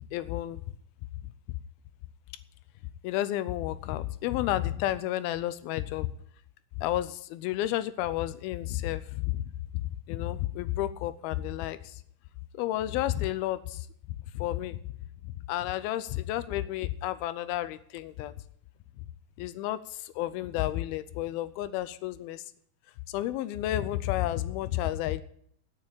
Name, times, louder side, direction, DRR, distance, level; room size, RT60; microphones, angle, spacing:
voice 1, 0.1-0.6 3.0-6.1 6.8-9.4 9.7-12.0 12.6-13.9 14.3-14.8 15.2-18.3 19.4-22.4 23.1-25.2, left 14 dB, 85° left, 14 dB, 2.6 m, -31 dB
12.0 x 7.3 x 8.8 m, 0.63 s
omnidirectional pair, 4.3 m